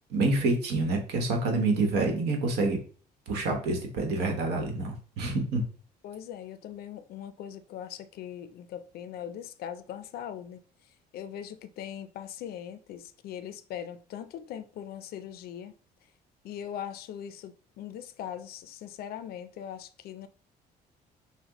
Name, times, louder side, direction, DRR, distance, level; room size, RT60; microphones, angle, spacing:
voice 1, 0.1-2.8 3.3-5.6, right 3 dB, 75° right, 1.1 m, -27 dB
voice 2, 6.0-10.6 11.1-15.7 16.4-20.3, left 9 dB, 65° left, 0.4 m, -40 dB
5.8 x 2.1 x 2.9 m
cardioid pair, 110°, 17 cm